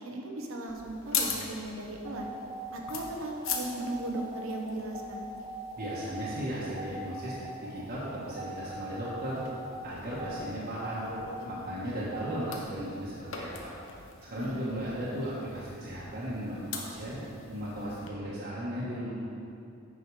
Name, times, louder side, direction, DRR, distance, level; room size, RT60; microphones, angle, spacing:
voice 1, 0.0-2.3 2.7-5.3 14.3-14.6, right 1 dB, 70° right, 1 dB, 1.1 m, -37 dB
sound 1, 0.7-18.1, left 5 dB, 65° left, 1.0 m, -42 dB
sound 2, 2.1-12.6, right 2 dB, 25° right, 0.7 m, -42 dB
voice 2, 5.8-7.3 7.6-9.4 9.8-11.1 11.5-13.7 14.2-17.2 17.5-19.1, equal, 50° right, -8 dB, 1.4 m, -36 dB
8.6 x 6.2 x 4.8 m, 2.6 s
head